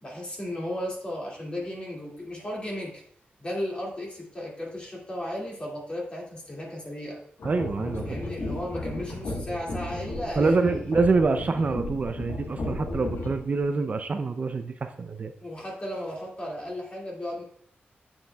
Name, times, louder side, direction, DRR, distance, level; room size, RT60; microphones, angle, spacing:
voice 1, 0.0-3.0 3.4-7.2 8.0-10.9 11.3-11.7 15.4-17.4, left 1 dB, 30° left, -3 dB, 2.2 m, -35 dB
sound 1, 7.4-13.6, left 2 dB, 70° left, 1.3 m, -34 dB
voice 2, 7.4-8.2 10.4-15.3, right 4 dB, 40° right, 7 dB, 0.5 m, -26 dB
8.9 x 7.2 x 2.3 m, 0.63 s
wide cardioid pair, 155°, 4 cm